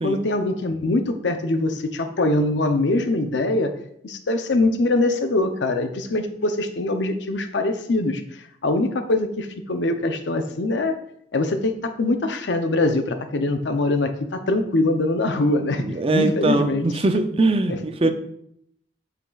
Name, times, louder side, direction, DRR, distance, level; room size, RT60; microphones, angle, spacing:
voice 1, 0.0-3.8 4.0-8.2 8.6-10.9 11.3-16.8 17.7-18.1, left 2 dB, 80° left, 7 dB, 0.6 m, -23 dB
voice 2, 15.8-18.1, right 2 dB, 30° right, 8 dB, 0.5 m, -21 dB
8.1 x 5.9 x 2.4 m, 0.72 s
head